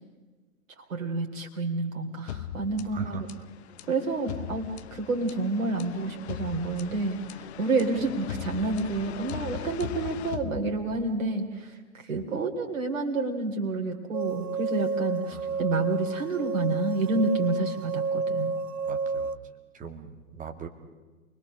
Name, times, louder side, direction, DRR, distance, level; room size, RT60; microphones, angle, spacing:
voice 1, 0.9-3.3 3.9-18.5, right 3 dB, 60° right, 3 dB, 3.3 m, -29 dB
sound 1, 2.3-11.2, left 10 dB, 50° left, 1.0 m, -39 dB
voice 2, 2.9-3.3 12.1-12.2 15.3-15.6 18.8-19.3 19.7-20.7, right 6 dB, 20° right, 5 dB, 2.3 m, -40 dB
sound 2, 14.1-19.4, right 4 dB, 90° right, 0.8 m, -30 dB
28.5 x 21.5 x 6.3 m, 1.3 s
figure-of-eight pair, 110°, 43 cm